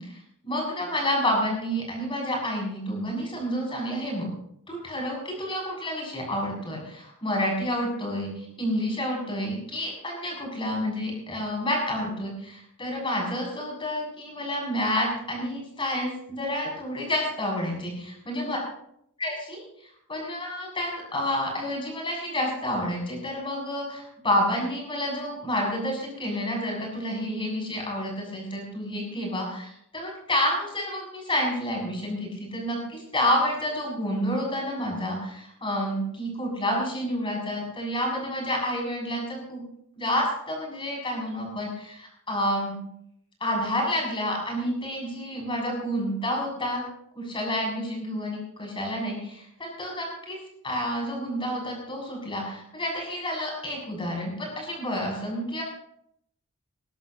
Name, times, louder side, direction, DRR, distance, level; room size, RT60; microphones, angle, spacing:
voice 1, 0.0-4.3 4.7-18.6 19.2-39.6 40.0-42.8 43.4-46.8 47.1-50.4 50.6-55.6, equal, 25° left, -1 dB, 7.3 m, -29 dB
21.0 x 16.5 x 3.0 m, 0.73 s
head